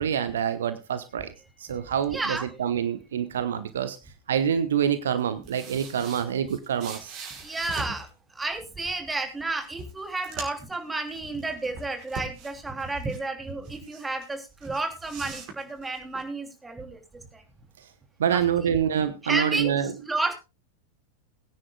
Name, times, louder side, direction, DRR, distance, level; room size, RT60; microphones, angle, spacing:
voice 1, 0.0-1.3 1.6-4.0 4.3-7.2 18.2-19.9, right 8 dB, 65° right, 12 dB, 0.9 m, -26 dB
voice 2, 2.1-2.4 7.4-8.1 8.3-17.0 17.3-17.4 18.3-18.7 19.2-20.3, right 2 dB, 10° right, 4 dB, 3.0 m, -31 dB
sound 1, 5.2-8.1 9.2-9.3 9.6-10.7 11.1-13.2 13.6-14.3 14.6-16.2, right 3 dB, 40° right, 5.0 m, -41 dB
22.5 x 9.9 x 2.3 m, 0.28 s
figure-of-eight pair, 90°, 0 cm